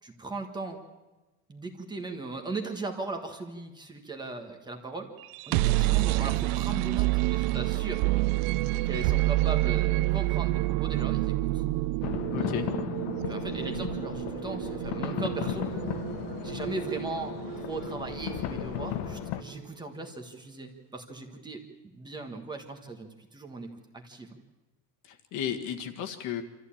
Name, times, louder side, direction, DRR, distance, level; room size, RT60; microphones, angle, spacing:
voice 1, 0.0-0.8 1.5-5.1 5.5-8.0 8.8-11.6 12.4-12.8 13.2-16.0 16.4-24.4, right 3 dB, 10° right, 3 dB, 1.4 m, -38 dB
sound 1, 5.2-19.1, right 19 dB, 65° right, 0.6 m, -28 dB
sound 2, 12.0-19.4, left 12 dB, 80° left, 1.3 m, -35 dB
voice 2, 12.3-12.7 25.1-26.4, left 9 dB, 55° left, 5 dB, 1.8 m, -34 dB
26.0 x 14.0 x 8.7 m, 1.1 s
cardioid pair, 175°, 36 cm